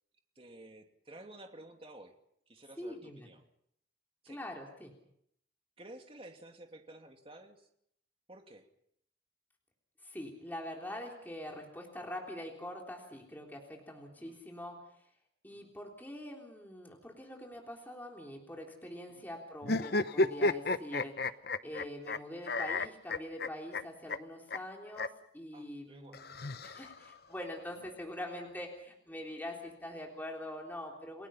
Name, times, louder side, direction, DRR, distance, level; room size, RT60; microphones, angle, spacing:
voice 1, 0.4-2.1 2.5-3.4 4.2-4.4 5.8-7.7 8.3-8.7 14.2-14.3 15.5-15.7 19.1-19.2 21.7-21.8 25.5-26.2, right 1 dB, 30° right, 4 dB, 2.6 m, -53 dB
voice 2, 2.8-3.3 4.3-4.9 10.0-15.1 15.4-21.1 21.6-31.3, left 1 dB, 10° left, 0 dB, 3.5 m, -44 dB
sound 1, 19.6-22.2 22.5-23.8 24.1-24.2 24.5-24.6 24.9-25.1 26.1-27.1, left 2 dB, 60° left, 0.9 m, -32 dB
30.0 x 19.5 x 5.7 m, 0.72 s
head